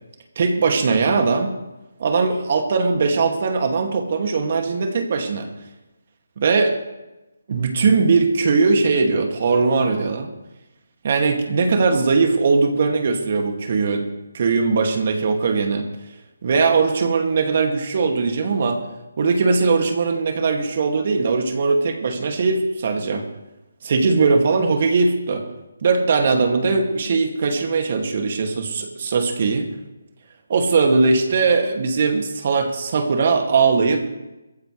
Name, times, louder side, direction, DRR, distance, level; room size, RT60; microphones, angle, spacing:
voice 1, 0.4-1.5 2.0-5.5 6.4-6.8 7.5-10.3 11.0-14.1 14.3-15.9 16.4-18.8 19.2-23.2 23.8-25.5 25.8-29.7 30.5-34.0, right 4 dB, 50° right, 4 dB, 2.2 m, -20 dB
21.5 x 14.5 x 3.3 m, 1.0 s
figure-of-eight pair, 155°, 0 cm